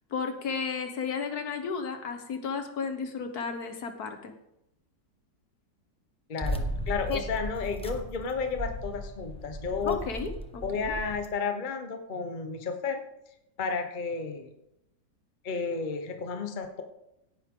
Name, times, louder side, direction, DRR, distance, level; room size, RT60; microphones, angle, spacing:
voice 1, 0.1-4.3 7.1-7.2 9.8-10.8, left 5 dB, 60° left, 7 dB, 1.6 m, -33 dB
voice 2, 6.3-10.0 10.6-13.0 13.6-14.5 15.4-16.8, left 5 dB, 30° left, 6 dB, 1.1 m, -32 dB
sound 1, 6.4-11.3, equal, 5° left, 0.7 m, -36 dB
17.0 x 9.9 x 3.8 m, 0.85 s
omnidirectional pair, 1.9 m